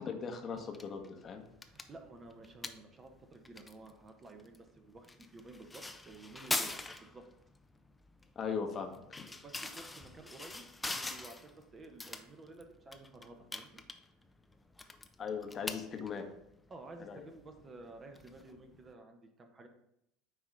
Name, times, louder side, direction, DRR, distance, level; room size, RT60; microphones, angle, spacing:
voice 1, 0.0-1.4 8.4-8.9 15.2-16.2 17.0-17.2, left 6 dB, 30° left, 4 dB, 0.9 m, -39 dB
sound 1, 0.5-18.9, left 2 dB, 10° left, 0.5 m, -45 dB
voice 2, 1.7-7.2 9.3-13.8 16.7-19.7, right 2 dB, 25° right, 5 dB, 0.9 m, -53 dB
9.0 x 3.0 x 4.0 m, 0.77 s
figure-of-eight pair, 70°, 0 cm